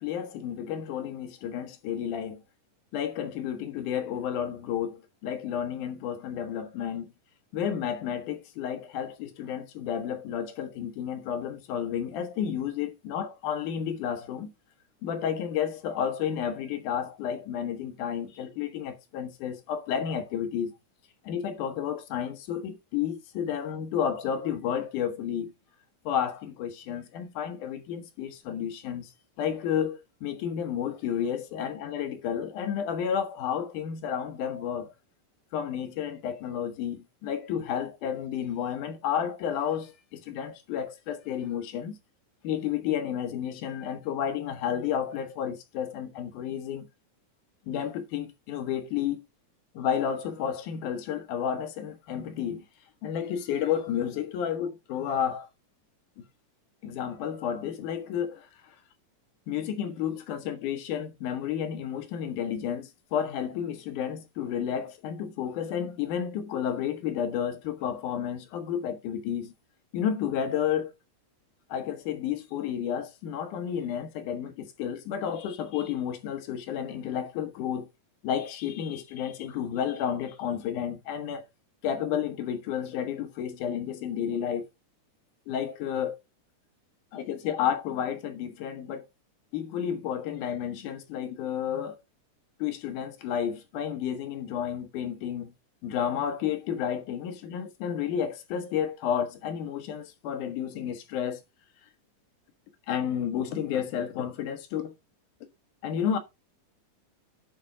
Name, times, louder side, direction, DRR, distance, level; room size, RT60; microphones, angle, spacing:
voice 1, 0.0-2.4 2.9-7.1 7.5-14.5 15.0-20.8 21.2-25.5 26.1-29.1 29.4-34.9 35.5-42.0 42.4-46.9 47.7-49.2 49.7-52.6 53.0-55.5 56.2-56.3 56.8-58.8 59.5-69.5 69.9-70.9 71.7-77.9 78.2-81.5 81.8-84.7 85.5-86.2 87.1-89.1 89.5-92.0 92.6-95.5 95.8-101.4 102.9-104.9 105.8-106.2, left 9 dB, 75° left, 2.6 m, -31 dB
10.5 x 4.3 x 3.7 m
omnidirectional pair, 3.6 m